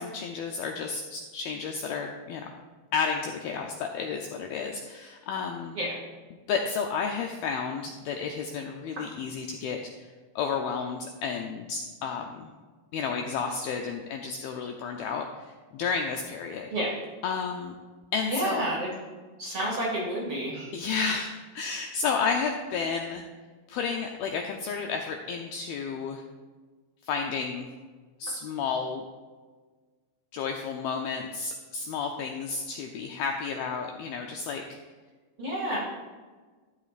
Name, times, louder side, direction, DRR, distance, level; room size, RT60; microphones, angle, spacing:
voice 1, 0.0-2.5 2.9-5.8 6.5-10.1 10.4-12.5 12.9-16.7 17.2-17.8 18.1-18.7 20.7-23.2 23.7-26.2 27.1-27.7 28.2-29.1 30.3-34.6, left 5 dB, 80° left, 3 dB, 2.2 m, -31 dB
voice 2, 18.3-18.9 19.4-20.7 35.4-35.8, right 1 dB, 40° right, -5 dB, 2.1 m, -29 dB
13.0 x 11.5 x 2.5 m, 1.4 s
omnidirectional pair, 4.9 m